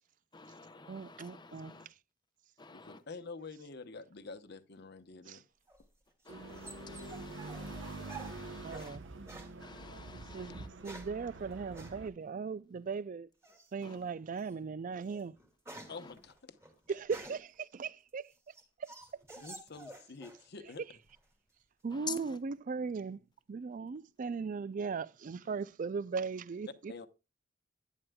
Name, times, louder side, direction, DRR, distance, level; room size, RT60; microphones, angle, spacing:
voice 1, 0.3-1.9 2.6-3.0 6.2-9.0 9.6-10.7 13.8-14.0 15.9-16.1 21.9-22.4, left 5 dB, 25° left, 0.9 m, -48 dB
voice 2, 0.9-1.9 5.3-5.4 8.6-9.1 10.3-13.3 13.7-15.4 16.9-18.3 18.8-18.9 20.8-20.9 21.8-23.2 23.5-27.1, right 5 dB, 45° right, 0.4 m, -38 dB
voice 3, 2.7-5.4 15.9-16.6 19.4-20.8 26.9-27.1, left 4 dB, 60° left, 0.9 m, -47 dB
sound 1, 5.7-9.0 9.3-9.6 10.5-11.2 11.7-12.0 13.4-13.8 14.4-14.5 14.9-17.6 18.1-20.4 20.7-21.3, right 3 dB, 15° right, 2.3 m, -50 dB
sound 2, 6.3-12.1, right 2 dB, 70° right, 0.9 m, -46 dB
11.0 x 10.5 x 2.3 m
head